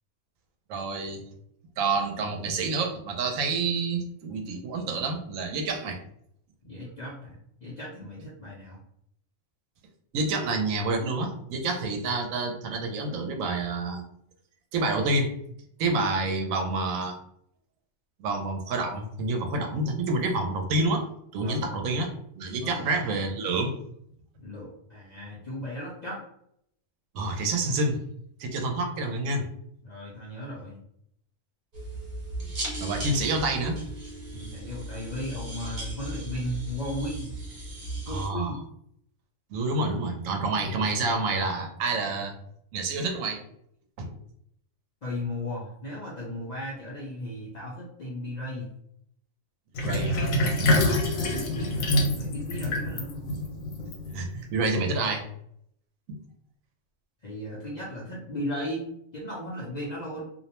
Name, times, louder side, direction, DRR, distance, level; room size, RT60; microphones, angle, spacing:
voice 1, 0.7-1.2 1.8-6.0 10.1-14.0 14.7-15.3 15.8-17.2 18.2-21.0 21.3-22.1 22.3-23.8 27.1-28.0 28.4-29.5 32.8-33.8 38.1-38.6 39.5-42.3 42.7-43.4 44.0-44.1 49.8-50.9 54.1-55.3 56.1-56.2, right 3 dB, 80° right, 4 dB, 1.0 m, -28 dB
voice 2, 6.6-8.8 21.4-21.7 22.6-22.8 24.4-26.2 29.8-30.8 34.3-37.3 38.0-38.6 45.0-48.7 51.3-53.3 57.2-60.2, left 1 dB, 55° left, -5 dB, 0.4 m, -36 dB
sound 1, 31.7-38.3, right 1 dB, 40° right, 0.8 m, -36 dB
Sink (filling or washing), 49.8-54.5, left 1 dB, 80° left, 1.0 m, -26 dB
2.5 x 2.1 x 2.9 m, 0.71 s
omnidirectional pair, 1.4 m